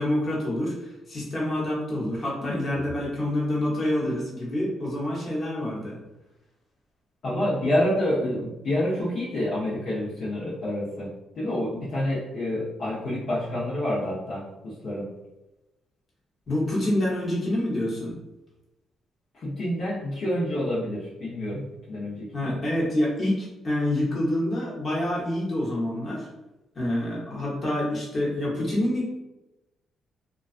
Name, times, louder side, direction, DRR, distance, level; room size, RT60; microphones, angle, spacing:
voice 1, 0.0-6.0 16.5-18.2 22.3-26.3 26.7-29.0, left 1 dB, 40° left, -5 dB, 1.0 m, -27 dB
voice 2, 7.2-15.1 19.3-22.6, left 1 dB, 60° left, -9 dB, 0.8 m, -28 dB
2.3 x 2.2 x 2.4 m, 1.0 s
cardioid pair, 90°, 0 cm